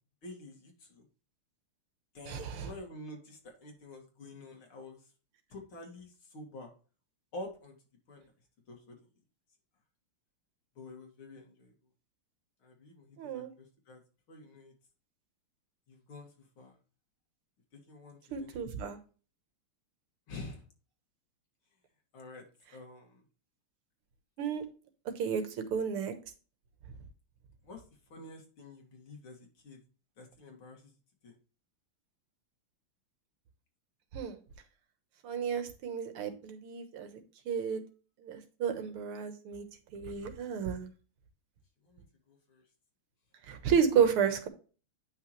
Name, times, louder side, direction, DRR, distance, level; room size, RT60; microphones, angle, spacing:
voice 1, 0.2-1.0 2.1-5.0 5.5-6.7 7.3-7.8 8.1-8.2 8.7-9.0 10.8-11.7 12.6-14.0 14.3-14.7 15.9-16.7 17.9-18.6 20.3-20.6 22.1-22.4 22.7-23.2 27.6-27.8 28.1-29.8 30.2-30.9 31.2-31.3 41.8-42.6, left 2 dB, 75° left, 1 dB, 3.0 m, -48 dB
voice 2, 2.3-2.7 13.2-13.5 18.3-19.0 24.4-24.6 25.2-26.1 34.1-34.4 35.2-37.8 38.2-39.7 39.9-40.9 43.5-44.5, right 7 dB, 85° right, 8 dB, 2.1 m, -32 dB
9.5 x 5.9 x 3.1 m, 0.37 s
omnidirectional pair, 2.3 m